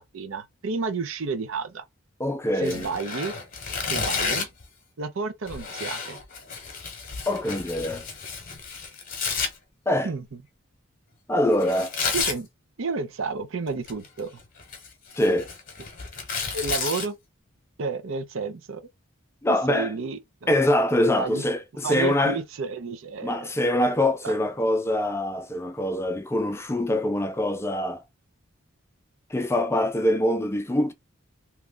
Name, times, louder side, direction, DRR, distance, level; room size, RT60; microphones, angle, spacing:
voice 1, 0.0-1.8 2.6-3.3 3.9-4.5 5.0-6.2 10.0-10.2 12.1-12.5 12.8-14.3 16.5-17.2 17.8-18.8 19.5-20.5 21.0-21.4 21.8-23.5 24.2-24.3, right 4 dB, 70° right, 0.5 m, -31 dB
voice 2, 2.2-2.9 7.3-8.0 9.9-10.1 11.3-11.9 15.2-15.5 19.4-19.9 20.5-22.4 23.2-28.0 29.3-30.9, left 1 dB, 10° left, 0.4 m, -24 dB
Tearing, 2.6-4.6 5.5-9.5 11.6-12.4 13.7-14.2 14.6-17.1, left 5 dB, 40° left, 0.9 m, -31 dB
2.9 x 2.3 x 3.6 m
head